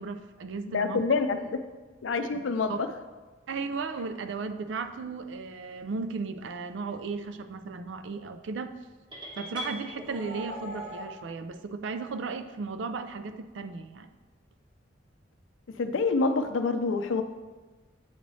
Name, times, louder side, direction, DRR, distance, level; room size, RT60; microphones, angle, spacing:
voice 1, 0.0-1.0 2.3-2.4 2.7-2.8 3.5-8.7 9.4-14.1, right 4 dB, 70° right, 9 dB, 0.4 m, -35 dB
voice 2, 0.7-1.6 2.0-2.9 15.8-17.2, left 4 dB, 80° left, 9 dB, 0.4 m, -27 dB
sound 1, 9.1-11.1, equal, 25° right, 1.0 m, -39 dB
7.9 x 3.2 x 4.0 m, 1.3 s
head